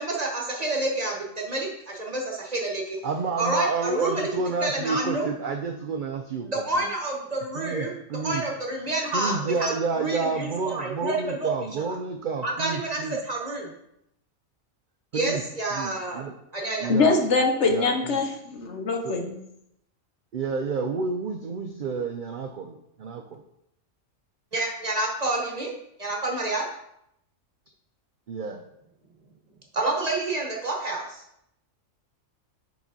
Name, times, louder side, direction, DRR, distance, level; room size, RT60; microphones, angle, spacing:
voice 1, 0.0-3.0 3.4-5.3 6.4-7.9 8.2-11.5 12.4-13.7 15.1-16.2 16.5-16.9 24.5-26.7 29.7-31.2, right 2 dB, 35° right, 0 dB, 1.0 m, -29 dB
voice 2, 3.0-6.5 6.8-6.9 7.6-8.4 9.1-13.2 15.1-15.4 15.7-16.3 16.8-17.2 17.7-18.2 19.0-19.2 20.3-23.4 28.3-28.6, right 4 dB, 70° right, 5 dB, 0.4 m, -30 dB
voice 3, 16.9-19.4, left 3 dB, 60° left, 3 dB, 1.1 m, -23 dB
4.9 x 4.1 x 5.2 m, 0.78 s
omnidirectional pair, 1.4 m